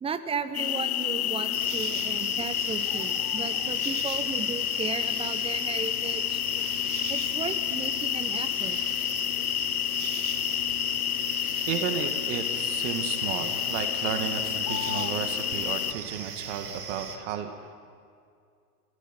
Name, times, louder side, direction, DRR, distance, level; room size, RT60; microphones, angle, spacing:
voice 1, 0.0-6.4 7.1-8.8, right 6 dB, 10° right, 11 dB, 1.1 m, -35 dB
sound 1, 0.5-15.9, left 13 dB, 70° left, 0.7 m, -29 dB
sound 2, 1.5-17.2, right 6 dB, 75° right, 2.2 m, -39 dB
voice 2, 11.7-17.7, right 8 dB, 50° right, 6 dB, 2.2 m, -33 dB
29.5 x 17.0 x 6.1 m, 2.3 s
hypercardioid pair, 110°, 47 cm